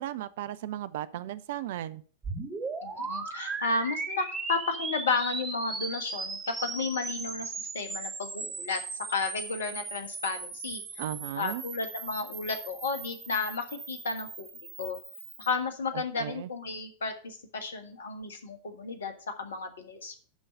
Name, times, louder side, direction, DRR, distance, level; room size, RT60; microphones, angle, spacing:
voice 1, 0.0-2.0 11.0-11.6 15.9-16.5, right 12 dB, 55° right, 15 dB, 0.5 m, -36 dB
sound 1, 2.2-15.6, right 4 dB, 20° right, 2.5 m, -38 dB
voice 2, 2.8-8.8 9.1-10.8 11.4-14.5 14.8-15.0 15.4-19.1 19.4-20.2, left 4 dB, 65° left, 8 dB, 1.5 m, -33 dB
11.5 x 3.9 x 6.6 m, 0.42 s
figure-of-eight pair, 90°, 0 cm